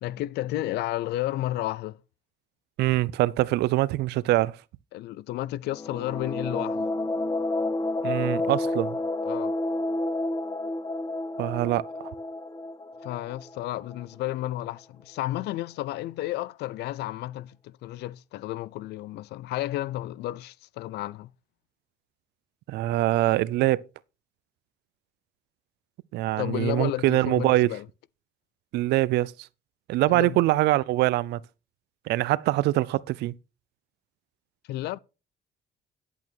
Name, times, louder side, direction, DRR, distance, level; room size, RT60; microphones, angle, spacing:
voice 1, 0.0-2.0 4.9-6.9 9.2-9.5 13.0-21.3 26.4-27.9 30.1-30.4 34.7-35.0, left 15 dB, 80° left, 0.5 m, -32 dB
voice 2, 2.8-4.6 8.0-9.0 11.4-11.8 22.7-23.8 26.1-27.7 28.7-29.3 29.9-31.4 32.1-33.3, right 17 dB, 80° right, 0.5 m, -23 dB
sound 1, 5.7-14.3, left 2 dB, 20° left, 1.0 m, -30 dB
10.5 x 8.3 x 4.5 m
cardioid pair, 110°, 17 cm